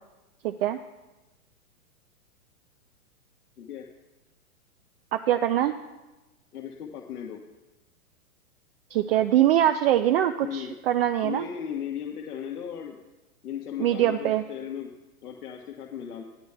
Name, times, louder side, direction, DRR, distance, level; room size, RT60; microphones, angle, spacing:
voice 1, 0.4-0.8 5.1-5.8 8.9-11.5 13.8-14.4, right 12 dB, 40° right, 8 dB, 0.5 m, -23 dB
voice 2, 6.5-7.4 10.4-10.7 11.2-13.0 13.4-14.9 15.2-16.2, left 9 dB, 80° left, 0 dB, 1.5 m, -36 dB
19.5 x 13.5 x 2.3 m, 1.1 s
hypercardioid pair, 135°, 45 cm